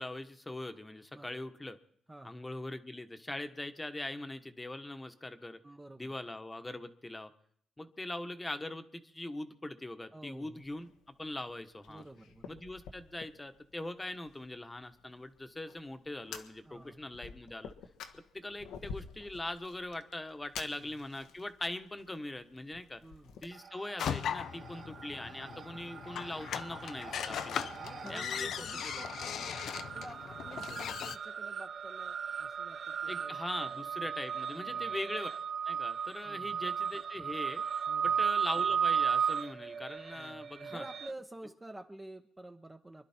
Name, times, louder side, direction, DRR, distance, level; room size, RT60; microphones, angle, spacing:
voice 1, 0.0-1.8 2.2-5.6 6.0-7.3 7.8-10.9 11.2-12.0 12.5-17.7 18.1-23.0 23.4-27.7 28.1-28.5 28.9-29.0 33.1-35.3 35.6-37.6 38.0-40.8, left 1 dB, 15° left, 9 dB, 1.3 m, -41 dB
voice 2, 2.1-2.4 5.6-6.1 10.1-10.6 11.9-12.5 16.6-17.0 20.6-20.9 23.0-23.4 27.8-33.4 33.7-34.1 34.5-35.0 36.2-36.7 37.9-38.3 40.1-43.0, right 1 dB, 15° right, 4 dB, 1.0 m, -51 dB
Fire, 10.5-23.5, left 6 dB, 90° left, 1.4 m, -51 dB
sound 1, 23.6-24.2 24.5-41.1, right 7 dB, 45° right, 0.5 m, -36 dB
sound 2, 24.0-31.2, left 8 dB, 65° left, 0.7 m, -39 dB
25.5 x 11.5 x 4.4 m, 0.65 s
cardioid pair, 90°, 0 cm